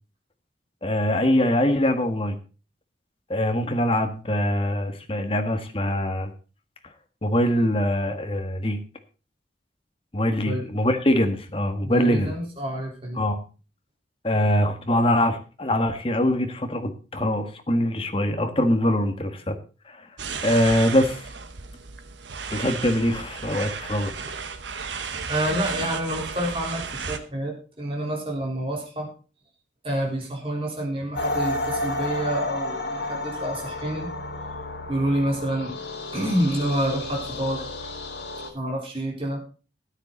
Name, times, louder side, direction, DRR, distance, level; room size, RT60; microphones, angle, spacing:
voice 1, 0.8-2.4 3.3-6.3 7.2-8.8 10.1-12.3 13.2-13.4 14.2-19.5 19.9-20.0 20.4-21.2 22.5-24.1, left 1 dB, 30° left, 6 dB, 1.5 m, -23 dB
voice 2, 11.8-13.2 25.3-29.1 29.8-34.1 34.9-35.8 36.1-37.6 38.5-39.4, right 1 dB, 30° right, -1 dB, 4.1 m, -28 dB
sound 1, 20.2-27.2, right 5 dB, 85° right, 1.2 m, -34 dB
sound 2, 31.1-38.5, left 2 dB, 75° left, 2.6 m, -31 dB
13.0 x 9.9 x 4.0 m, 0.36 s
head